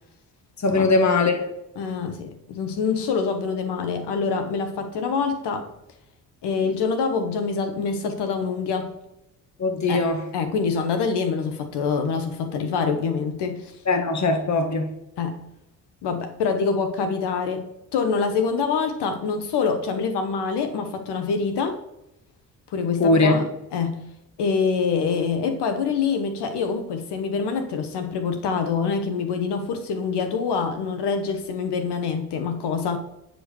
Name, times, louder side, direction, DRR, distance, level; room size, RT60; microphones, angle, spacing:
voice 1, 0.6-1.4 9.6-10.2 13.9-14.9 23.0-23.4, left 3 dB, 35° left, 4 dB, 1.8 m, -20 dB
voice 2, 1.8-5.7 6.4-9.0 9.9-10.1 10.3-13.8 15.2-15.4 16.0-21.8 22.7-24.0 24.4-33.0, left 5 dB, 55° left, 6 dB, 1.1 m, -25 dB
8.6 x 5.1 x 4.6 m, 0.87 s
hypercardioid pair, 45°, 47 cm